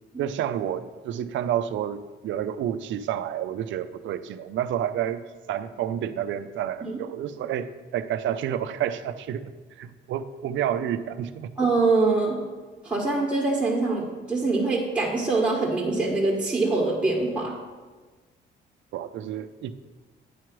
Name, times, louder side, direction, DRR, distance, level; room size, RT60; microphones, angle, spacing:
voice 1, 0.2-9.5 9.8-11.5 18.9-19.7, right 10 dB, 75° right, 12 dB, 0.4 m, -30 dB
voice 2, 11.6-12.4 12.8-17.5, right 3 dB, 5° right, -5 dB, 1.3 m, -24 dB
9.1 x 3.1 x 6.0 m, 1.3 s
cardioid pair, 90°, 20 cm